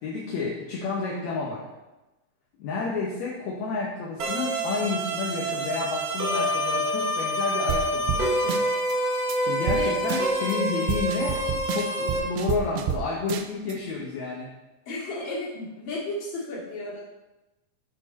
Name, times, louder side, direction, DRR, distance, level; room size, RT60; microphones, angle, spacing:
voice 1, 0.0-1.6 2.6-8.6 9.4-14.5, left 4 dB, 65° left, -3 dB, 1.9 m, -30 dB
sound 1, 4.2-12.2, equal, 55° right, 1.4 m, -27 dB
sound 2, 7.7-7.8 8.1-8.2 8.5-8.9 9.3-9.4 9.7-9.8 10.1-10.5 10.9-13.0 13.3-13.7, right 10 dB, 90° right, 2.5 m, -29 dB
voice 2, 9.6-9.9 14.9-17.0, left 2 dB, 35° left, -5 dB, 2.5 m, -33 dB
12.0 x 4.5 x 4.2 m, 1.0 s
omnidirectional pair, 4.3 m